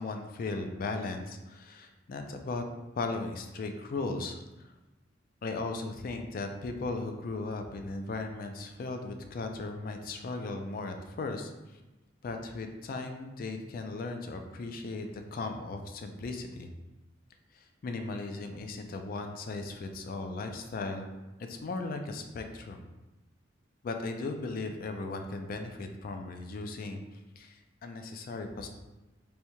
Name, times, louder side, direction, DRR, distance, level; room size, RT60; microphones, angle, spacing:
voice 1, 0.0-2.6 3.0-4.7 5.4-11.5 12.2-16.7 17.8-21.1 21.5-22.9 23.8-27.0 27.4-28.7, left 3 dB, 45° left, 5 dB, 0.3 m, -37 dB
3.4 x 2.6 x 2.9 m, 1.1 s
head